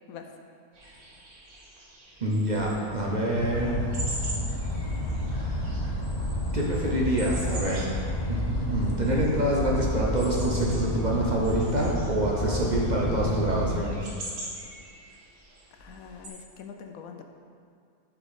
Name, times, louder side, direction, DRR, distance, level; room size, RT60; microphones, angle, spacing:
sound 1, 0.7-16.3, right 1 dB, 90° right, 1.8 m, -43 dB
voice 1, 2.2-3.8 5.3-5.9 6.5-8.0 8.3-14.1, right 1 dB, 35° right, -4 dB, 0.9 m, -27 dB
sound 2, 3.4-13.7, left 1 dB, 40° left, 0.7 m, -30 dB
voice 2, 15.8-17.2, left 7 dB, 80° left, 4 dB, 1.0 m, -43 dB
8.0 x 6.0 x 4.2 m, 2.2 s
omnidirectional pair, 1.5 m